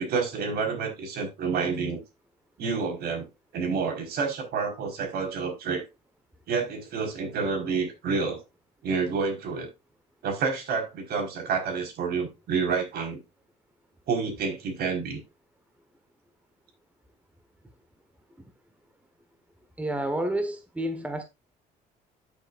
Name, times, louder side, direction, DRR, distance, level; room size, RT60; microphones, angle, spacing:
voice 1, 0.0-2.0 2.6-3.3 3.5-5.8 6.5-8.4 8.8-9.7 10.2-13.2 14.1-15.2, right 5 dB, 70° right, 4.7 m, -29 dB
voice 2, 19.8-21.2, right 1 dB, 10° right, 1.4 m, -29 dB
12.5 x 7.0 x 2.6 m
cardioid pair, 110°, 17 cm